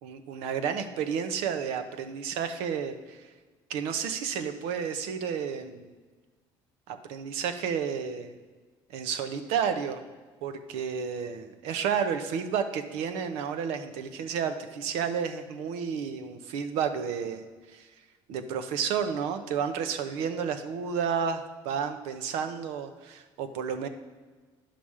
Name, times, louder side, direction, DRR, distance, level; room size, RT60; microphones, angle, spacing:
voice 1, 0.0-3.3 3.7-5.9 6.9-8.3 8.9-10.0 10.4-17.5 17.7-17.9 18.3-23.9, right 7 dB, 85° right, 8 dB, 0.8 m, -31 dB
10.0 x 5.9 x 4.8 m, 1.4 s
cardioid pair, 110°, 10 cm